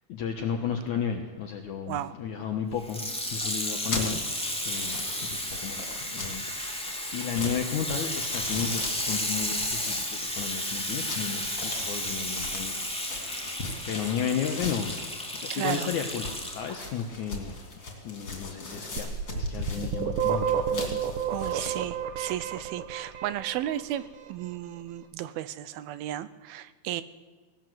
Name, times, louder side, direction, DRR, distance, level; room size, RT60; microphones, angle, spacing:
voice 1, 0.1-4.2 4.6-13.4 13.9-17.6 18.0-21.0, left 7 dB, 60° left, 4 dB, 2.4 m, -33 dB
Water tap faucet / Sink (filling or washing), 2.8-16.8 17.5-17.6, left 1 dB, ahead, 2.0 m, -33 dB
sound 1, 3.6-21.7, left 3 dB, 30° left, 3.5 m, -40 dB
voice 2, 15.5-15.9 21.3-27.0, right 13 dB, 80° right, 14 dB, 2.8 m, -34 dB
sound 2, 19.0-23.8, right 7 dB, 60° right, 2.9 m, -30 dB
19.0 x 18.5 x 7.9 m, 1.4 s
omnidirectional pair, 4.3 m